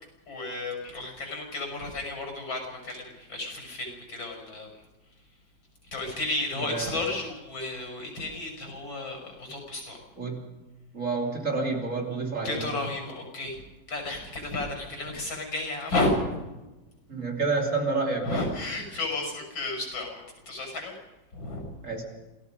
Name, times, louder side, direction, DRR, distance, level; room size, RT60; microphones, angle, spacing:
voice 1, 0.3-4.7 5.9-10.0 12.4-13.6 13.9-16.4 18.2-20.9 21.3-21.8, left 2 dB, 80° left, 3 dB, 7.1 m, -32 dB
voice 2, 6.6-7.0 10.2-10.4 10.9-12.7 17.1-18.4 21.8-22.0, right 3 dB, 40° right, 1 dB, 3.3 m, -29 dB
28.0 x 18.0 x 5.3 m, 1.1 s
omnidirectional pair, 2.1 m